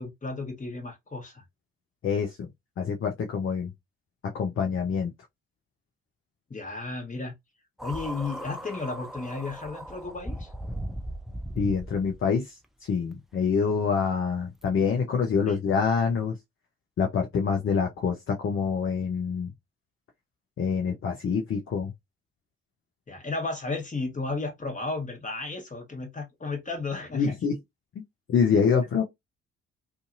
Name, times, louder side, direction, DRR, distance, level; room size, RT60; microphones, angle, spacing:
voice 1, 0.0-1.4 6.5-7.3 7.8-10.5 15.5-15.6 23.1-27.4, left 3 dB, 25° left, 1.3 m, -34 dB
voice 2, 2.0-2.5 2.8-3.7 4.3-5.1 11.6-12.5 12.9-16.4 17.0-19.5 20.6-21.9 27.1-27.6 28.3-29.0, left 6 dB, 40° left, 0.7 m, -26 dB
sound 1, 7.8-12.3 13.1-13.2 14.6-14.7, right 1 dB, ahead, 0.4 m, -38 dB
2.6 x 2.4 x 2.6 m
figure-of-eight pair, 40°, 33 cm